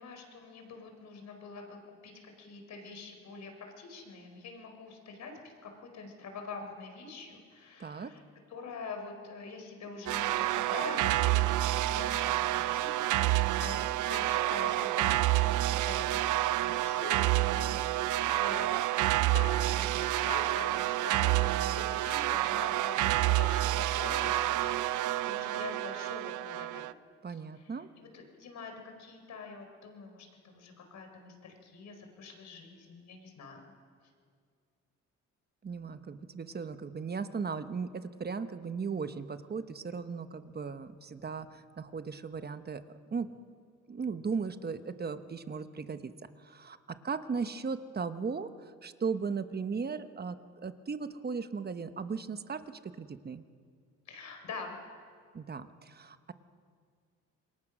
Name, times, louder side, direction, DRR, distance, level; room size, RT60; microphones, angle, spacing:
voice 1, 0.0-8.2 8.5-16.2 16.5-17.2 17.5-18.7 19.3-26.9 27.3-27.7 28.0-33.6 54.1-54.8, left 4 dB, 65° left, 4 dB, 4.5 m, -45 dB
voice 2, 7.8-8.1 27.2-27.9 35.6-42.8 43.1-43.3 43.9-46.1 46.4-53.4 55.3-56.3, right 5 dB, 30° right, 10 dB, 1.1 m, -37 dB
sound 1, 10.1-26.9, right 15 dB, 80° right, 0.6 m, -29 dB
26.5 x 21.5 x 6.2 m, 2.1 s
cardioid pair, 90°, 30 cm